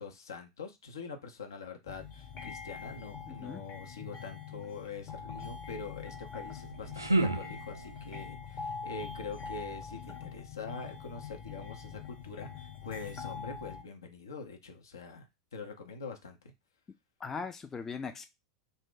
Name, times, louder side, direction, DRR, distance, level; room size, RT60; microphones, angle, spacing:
voice 1, 0.0-15.3 15.5-16.5, left 4 dB, 75° left, 0.6 m, -44 dB
sound 1, 1.9-13.8, left 6 dB, 40° left, 0.9 m, -43 dB
voice 2, 3.3-3.6 17.2-18.3, left 5 dB, 20° left, 0.3 m, -39 dB
sound 2, 6.5-8.1, right 2 dB, 90° right, 0.4 m, -32 dB
2.5 x 2.0 x 3.6 m
figure-of-eight pair, 90°, 2 cm